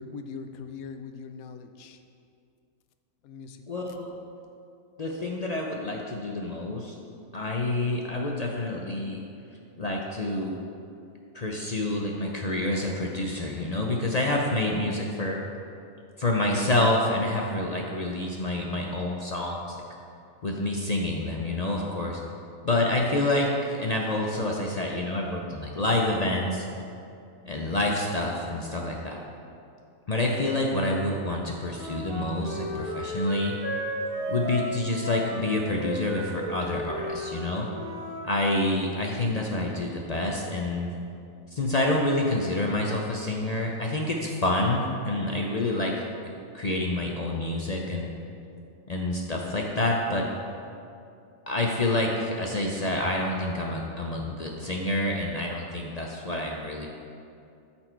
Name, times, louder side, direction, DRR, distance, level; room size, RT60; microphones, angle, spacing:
voice 1, 0.0-2.0 3.2-3.6, left 5 dB, 80° left, 8 dB, 1.1 m, -41 dB
voice 2, 3.7-4.1 5.0-6.9 7.3-9.2 9.8-10.6 11.3-15.4 16.2-19.8 20.4-22.2 22.6-26.7 27.4-29.2 30.1-33.5 34.3-37.7 38.2-40.9 41.5-46.0 46.5-48.1 48.9-50.2 51.5-56.9, left 2 dB, 45° left, -1 dB, 0.5 m, -28 dB
Wind instrument woodwind instrument, 31.7-38.2, equal, 90° right, 1.8 m, -34 dB
13.0 x 4.3 x 4.5 m, 2.5 s
omnidirectional pair, 1.5 m